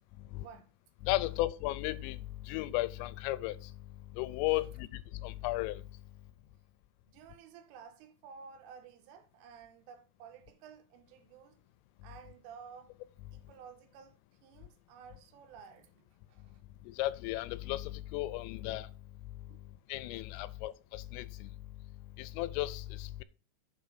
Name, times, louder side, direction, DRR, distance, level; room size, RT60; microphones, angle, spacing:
voice 1, 0.4-0.7 4.5-4.7 7.1-11.6 12.0-12.9 13.3-16.6 19.4-19.6 20.4-20.6, right 6 dB, 85° right, 3.5 m, -53 dB
voice 2, 1.0-2.2 2.4-3.7 4.1-5.8 16.9-18.9 19.9-21.5 22.2-23.2, left 17 dB, 90° left, 3.2 m, -35 dB
8.7 x 3.8 x 6.7 m
omnidirectional pair, 5.7 m